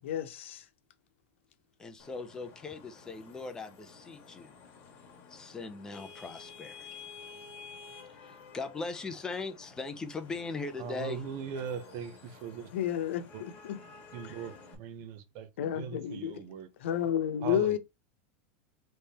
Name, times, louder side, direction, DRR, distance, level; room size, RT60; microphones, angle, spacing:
voice 1, 0.0-0.6 12.7-13.8 14.2-14.3 15.6-16.4 16.8-17.8, left 10 dB, 85° left, 0.9 m, -31 dB
voice 2, 1.8-4.5 5.3-7.0 8.2-11.2, left 3 dB, 10° left, 0.6 m, -39 dB
Vehicle horn car horn honking / Traffic noise roadway noise, 2.0-14.8, left 5 dB, 30° left, 1.6 m, -51 dB
voice 3, 10.8-12.7 13.3-13.4 14.1-16.7 17.4-17.8, right 7 dB, 40° right, 0.8 m, -40 dB
3.6 x 3.3 x 4.2 m
supercardioid pair, 170°, 6 cm